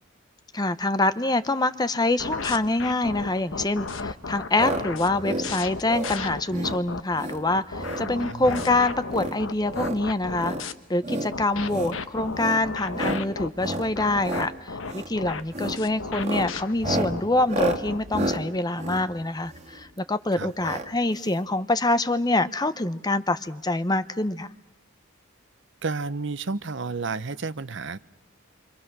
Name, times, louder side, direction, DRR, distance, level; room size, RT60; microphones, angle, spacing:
voice 1, 0.5-24.5, left 2 dB, 20° left, 13 dB, 0.8 m, -25 dB
sound 1, 2.2-7.0 7.5-10.7 11.3-18.0, left 4 dB, 75° left, 1.2 m, -34 dB
sound 2, 4.5-4.8 5.1-5.5 5.8-6.1 6.5-6.8 7.1-7.4 7.7-8.1 8.4-8.7 9.1-10.0 10.4-10.6 11.0-11.3 11.7-12.0 12.3-12.6 12.9-13.2 13.6-13.9 14.2-14.5 14.9-15.1 15.5-15.8 16.1-19.8 20.6-20.9 21.2-21.3 21.4-21.5, right 1 dB, 35° right, 2.0 m, -31 dB
voice 2, 8.0-8.6 20.4-20.5 25.8-28.0, right 4 dB, 65° right, 15 dB, 0.9 m, -31 dB
28.5 x 25.0 x 6.1 m, 0.88 s
head